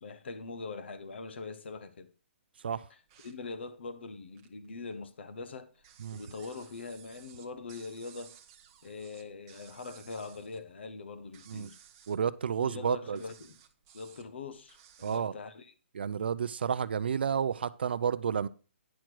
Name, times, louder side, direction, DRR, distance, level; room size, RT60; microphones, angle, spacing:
voice 1, 0.0-2.1 2.9-3.0 3.2-5.8 6.1-8.4 8.8-11.8 12.4-13.6 13.9-15.7, left 4 dB, 60° left, 1.0 m, -43 dB
sound 1, 2.9-4.7 5.0-15.2, right 9 dB, 20° right, 0.8 m, -58 dB
voice 2, 12.1-13.2 15.0-15.3 16.0-18.5, right 7 dB, 55° right, 0.4 m, -31 dB
10.5 x 6.2 x 4.5 m
hypercardioid pair, 175°, 7 cm